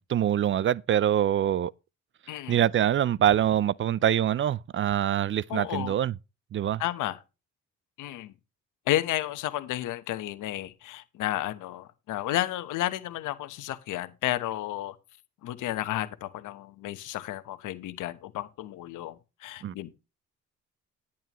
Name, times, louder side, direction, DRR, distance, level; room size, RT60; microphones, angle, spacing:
voice 1, 0.0-1.7 2.5-6.1 6.5-6.8 19.6-19.7, right 10 dB, 40° right, 0.4 m, -24 dB
voice 2, 2.3-2.6 5.5-6.0 6.8-7.2 8.0-8.3 8.9-14.9 15.4-19.9, left 14 dB, 85° left, 1.1 m, -32 dB
11.0 x 10.0 x 3.0 m
cardioid pair, 90°, 30 cm